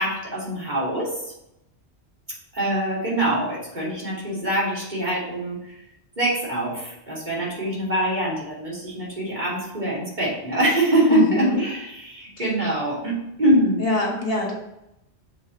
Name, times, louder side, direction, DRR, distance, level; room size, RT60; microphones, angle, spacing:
voice 1, 0.0-1.3 2.5-5.8 6.2-13.8, right 1 dB, 45° right, -6 dB, 2.7 m, -24 dB
voice 2, 11.1-11.6 13.8-14.5, left 1 dB, 60° left, -2 dB, 1.9 m, -24 dB
7.6 x 5.2 x 3.9 m, 0.83 s
omnidirectional pair, 1.1 m